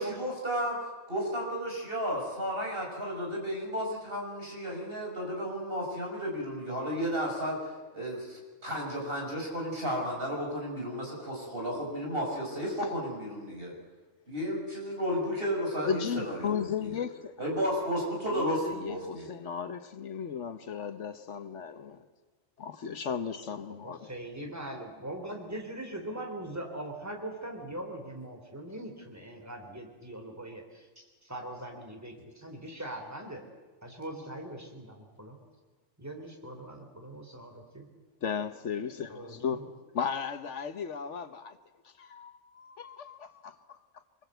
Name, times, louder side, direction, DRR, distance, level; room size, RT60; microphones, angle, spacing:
voice 1, 0.0-13.7 14.3-17.0 17.4-19.3, equal, 50° right, 6.1 m, -33 dB
voice 2, 15.8-17.3 18.3-22.0 22.6-24.1 38.2-39.6 39.9-41.6 42.0-43.8, left 7 dB, 70° left, 1.3 m, -35 dB
voice 3, 23.7-30.9 31.2-33.4 33.8-35.4 36.0-37.9 39.1-39.7, right 1 dB, 15° right, 3.3 m, -41 dB
25.5 x 21.0 x 8.0 m
omnidirectional pair, 1.3 m